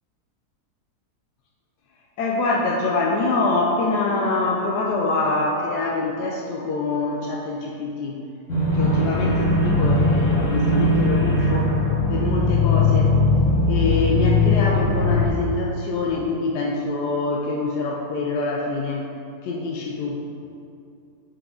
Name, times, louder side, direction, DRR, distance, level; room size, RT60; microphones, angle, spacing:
voice 1, 2.2-8.2 8.7-11.7 12.1-13.2 13.7-19.1 19.4-20.2, left 3 dB, 90° left, -2 dB, 1.2 m, -25 dB
sound 1, 8.5-15.3, left 2 dB, 65° left, 2.1 m, -19 dB
6.3 x 5.9 x 3.8 m, 2.6 s
omnidirectional pair, 1.7 m